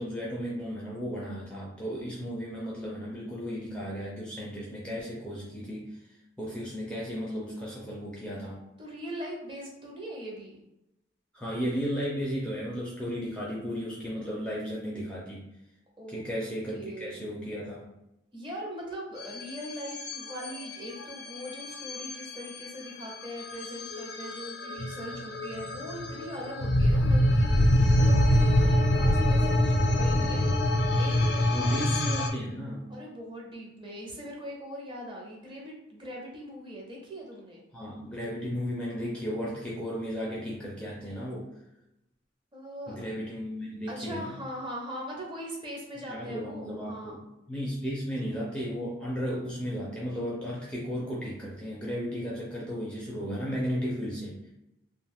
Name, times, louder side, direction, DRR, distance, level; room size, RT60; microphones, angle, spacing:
voice 1, 0.0-5.9 6.4-8.6 11.3-15.4 16.1-17.8 31.5-32.9 37.7-41.5 42.9-44.3 46.1-47.2 47.5-54.4, equal, 5° left, -5 dB, 0.5 m, -34 dB
voice 2, 8.8-10.6 16.0-16.2 16.7-17.3 18.3-32.2 32.9-37.6 42.5-43.0 43.9-47.2, equal, 25° right, -3 dB, 0.7 m, -41 dB
sound 1, 19.2-32.3, left 1 dB, 65° left, 0.4 m, -25 dB
2.4 x 2.3 x 3.4 m, 0.88 s
head